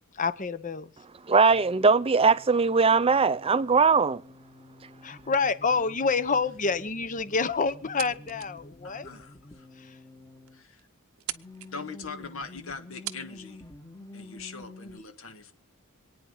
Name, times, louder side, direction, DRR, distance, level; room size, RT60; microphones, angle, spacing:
voice 1, 0.1-0.9 5.0-9.1 9.8-9.9, left 4 dB, 35° left, 0.9 m, -28 dB
voice 2, 1.3-4.2, right 4 dB, 25° right, 0.6 m, -20 dB
sound 1, 1.5-10.7 11.3-15.0, left 2 dB, 15° left, 1.5 m, -49 dB
sound 2, 7.7-8.6 9.0-9.1 9.8-9.9 10.2-10.3 10.5-10.8 11.1-11.7 12.6-12.7 13.0-13.3, right 14 dB, 70° right, 0.8 m, -38 dB
voice 3, 8.8-9.7 10.5-10.9 11.7-13.6 14.1-15.5, left 4 dB, 65° left, 1.7 m, -42 dB
26.5 x 9.6 x 3.9 m
head